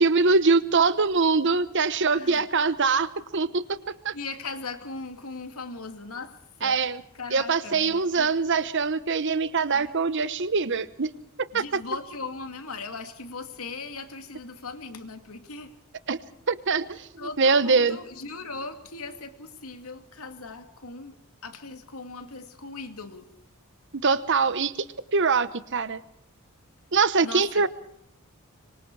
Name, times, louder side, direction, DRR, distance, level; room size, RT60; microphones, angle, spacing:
voice 1, 0.0-3.8 4.0-4.1 6.6-7.0 7.3-11.1 11.5-11.6 16.1-16.2 16.5-17.1 17.4-18.0 24.0-24.7 25.1-26.0 26.9-27.7, right 4 dB, 55° right, 15 dB, 1.0 m, -23 dB
voice 2, 2.1-2.5 4.1-6.8 7.1-8.3 9.7-9.9 11.5-15.8 17.2-23.2 27.2-27.7, left 3 dB, 75° left, 7 dB, 2.6 m, -39 dB
25.5 x 23.5 x 4.8 m, 0.72 s
head